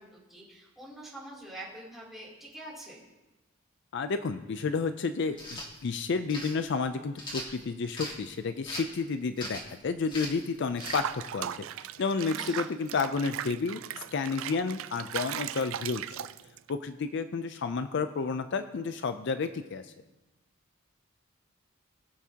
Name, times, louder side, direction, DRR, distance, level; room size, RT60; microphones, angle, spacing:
voice 1, 0.0-3.0 12.3-12.7, right 1 dB, ahead, -7 dB, 3.1 m, -45 dB
voice 2, 3.9-11.5 11.8-13.8 14.1-16.2 16.7-19.9, left 4 dB, 60° left, 10 dB, 0.5 m, -31 dB
sound 1, 5.3-5.7 6.3-6.5 7.2-8.2 8.6-9.0 9.4-9.7 10.1-10.4 10.8-11.0, left 1 dB, 25° left, 1.7 m, -38 dB
Water / Bathtub (filling or washing), 10.8-16.7, right 10 dB, 75° right, 0.4 m, -38 dB
20.0 x 7.2 x 2.9 m, 1.1 s
head